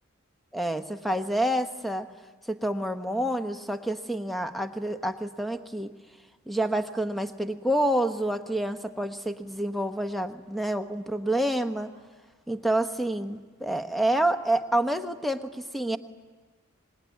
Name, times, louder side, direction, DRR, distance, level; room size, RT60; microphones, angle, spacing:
voice 1, 0.5-2.1 2.5-5.9 6.5-11.9 12.5-16.0, right 1 dB, ahead, 7 dB, 0.9 m, -28 dB
25.5 x 21.0 x 9.4 m, 1.4 s
head